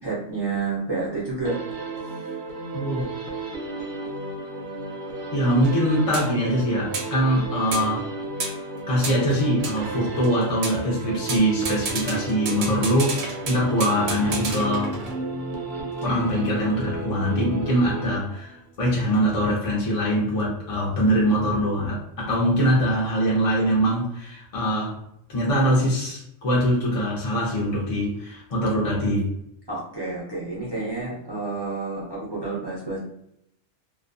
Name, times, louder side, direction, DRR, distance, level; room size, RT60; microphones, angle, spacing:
voice 1, 0.0-1.6 2.0-2.2 29.7-33.0, right 3 dB, 40° right, -7 dB, 0.3 m, -29 dB
sound 1, 1.4-18.7, right 2 dB, 65° right, 0.7 m, -33 dB
voice 2, 2.7-3.1 5.3-8.1 8.9-15.0 16.0-25.0 25.3-29.3, equal, 45° left, -5 dB, 0.4 m, -23 dB
sound 2, 5.6-5.7 6.1-6.3 6.9-7.1 7.7-7.9 8.4-8.6 9.0-10.3 10.6-10.8 11.3-15.4, right 4 dB, 85° right, 1.0 m, -32 dB
2.4 x 2.2 x 2.5 m, 0.76 s
omnidirectional pair, 1.4 m